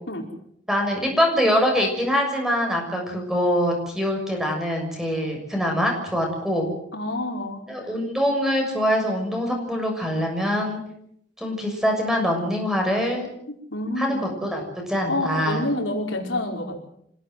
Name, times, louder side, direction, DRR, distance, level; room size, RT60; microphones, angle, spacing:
voice 1, 0.7-6.7 7.7-10.8 11.4-13.3 14.0-14.6 14.9-15.6, equal, 5° right, 2 dB, 6.7 m, -24 dB
voice 2, 6.9-7.9 13.7-14.2 15.1-16.9, left 1 dB, 90° left, 1 dB, 4.9 m, -28 dB
26.5 x 17.0 x 7.9 m, 0.73 s
head